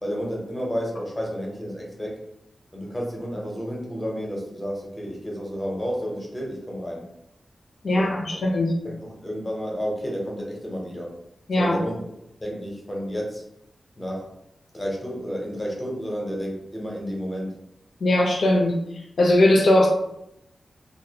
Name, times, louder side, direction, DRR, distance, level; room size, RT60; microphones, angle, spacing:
voice 1, 0.0-2.2 2.7-7.0 7.9-8.4 8.8-11.1 11.6-12.0 12.4-13.4 14.0-14.3 14.7-17.5, equal, 15° left, -2 dB, 0.6 m, -31 dB
voice 2, 7.8-8.7 11.5-11.8 18.0-18.8 19.2-19.9, left 1 dB, 80° left, -1 dB, 0.5 m, -19 dB
2.3 x 2.1 x 2.7 m, 0.81 s
wide cardioid pair, 95°, 0 cm